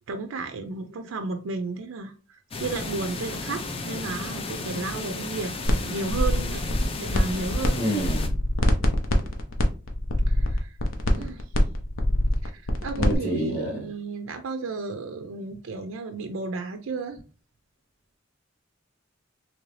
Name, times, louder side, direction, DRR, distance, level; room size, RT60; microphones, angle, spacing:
voice 1, 0.1-2.1 2.6-6.6 7.0-7.9 10.3-10.7 11.2-11.4 12.4-17.2, right 3 dB, 90° right, 0.4 m, -33 dB
sound 1, 2.5-8.3, left 3 dB, 30° left, 0.4 m, -34 dB
sound 2, 5.7-5.8 6.1-7.7 8.0-13.2, left 1 dB, 75° left, 0.6 m, -25 dB
voice 2, 7.8-8.3 11.1-11.3 13.0-13.8, equal, 50° left, 1.6 m, -28 dB
3.1 x 2.6 x 3.1 m
head